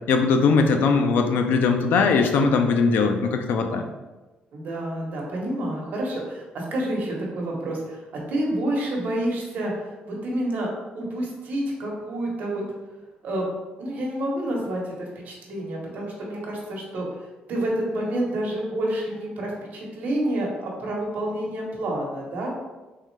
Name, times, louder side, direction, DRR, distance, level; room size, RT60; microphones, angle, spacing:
voice 1, 0.1-3.8, left 4 dB, 75° left, 5 dB, 0.4 m, -20 dB
voice 2, 4.5-9.7 10.1-10.7 10.9-12.6 13.2-13.5 13.8-17.1 17.5-22.5, right 1 dB, 60° right, -2 dB, 1.0 m, -28 dB
3.7 x 3.2 x 3.2 m, 1.2 s
cardioid pair, 155°, 3 cm